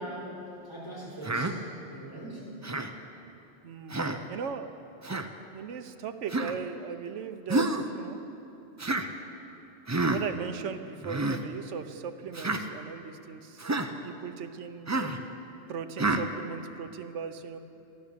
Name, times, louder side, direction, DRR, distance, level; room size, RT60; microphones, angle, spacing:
voice 1, 0.0-1.6 1.9-2.6, right 1 dB, 20° left, -6 dB, 4.1 m, -41 dB
Human voice, 1.2-1.5 2.6-2.9 3.9-4.2 5.0-5.3 6.3-6.6 7.5-7.8 8.8-9.1 9.9-10.2 11.0-11.4 12.3-12.6 13.6-13.9 14.9-15.2 16.0-16.3, right 2 dB, 25° right, 0.4 m, -28 dB
voice 2, 3.6-4.0 4.3-4.9 5.2-5.3 5.5-8.2 10.1-13.7 14.0-15.1 15.7-17.6, right 6 dB, 85° right, 9 dB, 1.1 m, -38 dB
13.5 x 12.5 x 6.8 m, 2.9 s
omnidirectional pair, 1.2 m